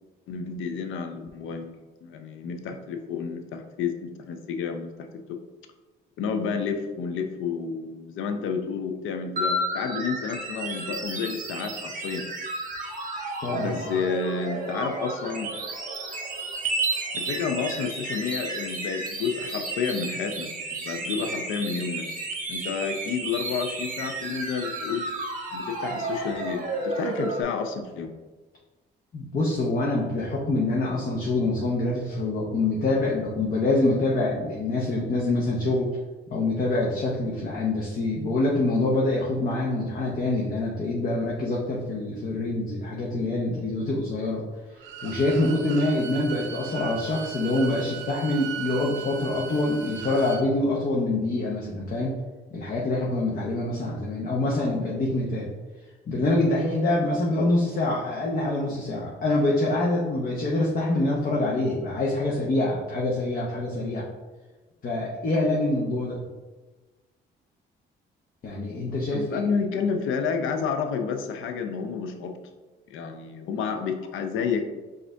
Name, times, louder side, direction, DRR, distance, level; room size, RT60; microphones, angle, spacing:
voice 1, 0.3-1.7 2.0-5.4 6.2-12.2 13.5-15.5 17.1-22.1 22.5-25.1 25.5-28.1 69.1-72.3 72.9-74.6, left 6 dB, 80° left, 6 dB, 0.5 m, -30 dB
sound 1, 9.4-27.4, right 2 dB, 40° right, 0.9 m, -32 dB
voice 2, 13.4-13.8 29.1-35.9 36.3-44.4 45.0-52.2 52.5-55.5 56.1-64.1 64.8-66.2 68.4-69.5, left 2 dB, 45° left, -4 dB, 0.8 m, -25 dB
Bowed string instrument, 44.8-50.4, right 8 dB, 75° right, 0.5 m, -38 dB
5.1 x 2.5 x 3.3 m, 1.2 s
cardioid pair, 90°, 20 cm